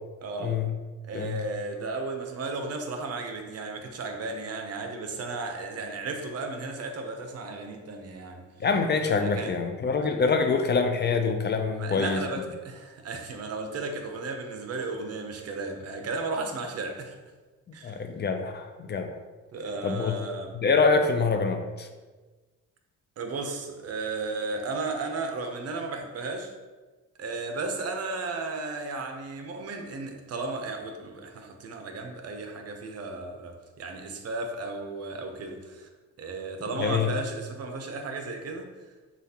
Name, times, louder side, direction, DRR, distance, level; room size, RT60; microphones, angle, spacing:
voice 1, 0.2-0.6 1.0-8.4 9.1-9.5 11.7-17.2 17.7-18.0 19.5-20.5 23.2-26.5 27.2-35.9 36.2-38.7, right 3 dB, 55° right, 4 dB, 0.7 m, -34 dB
voice 2, 8.6-12.2 17.8-19.1 19.8-20.1 20.6-21.9 36.8-37.1, left 4 dB, 35° left, 6 dB, 0.4 m, -25 dB
6.8 x 2.4 x 2.9 m, 1.3 s
cardioid pair, 90°, 30 cm